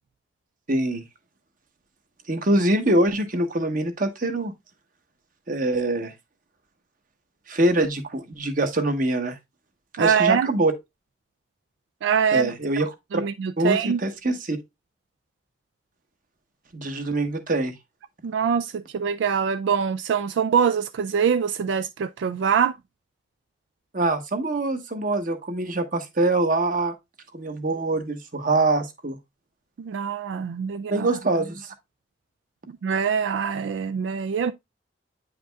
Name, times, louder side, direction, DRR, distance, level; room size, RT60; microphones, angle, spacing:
voice 1, 0.7-1.0 2.3-4.5 5.5-6.1 7.5-9.4 10.0-10.7 12.3-13.2 13.6-14.6 16.7-17.7 23.9-26.9 27.3-29.2 30.9-31.7, right 2 dB, 50° right, 1.1 m, -24 dB
voice 2, 10.0-10.5 12.0-12.5 13.1-14.0 18.2-22.7 29.8-31.1 32.8-34.5, right 7 dB, 85° right, 0.3 m, -24 dB
9.0 x 5.0 x 2.3 m
head